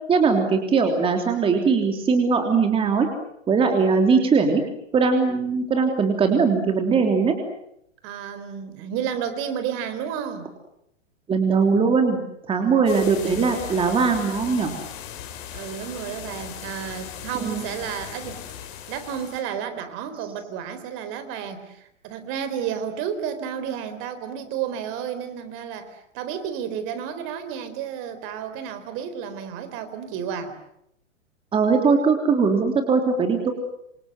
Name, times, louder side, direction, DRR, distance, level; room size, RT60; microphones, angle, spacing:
voice 1, 0.1-3.1 3.5-4.6 4.9-7.3 11.3-12.2 12.5-14.7 17.4-17.7 31.5-33.5, right 5 dB, 15° right, 4 dB, 3.3 m, -20 dB
voice 2, 8.0-10.5 12.5-12.8 15.5-18.4 18.9-30.5, right 8 dB, 35° right, 10 dB, 4.0 m, -31 dB
sound 1, 12.9-19.4, left 9 dB, 40° left, 6.9 m, -38 dB
27.5 x 27.0 x 8.0 m, 0.77 s
hypercardioid pair, 140°, 38 cm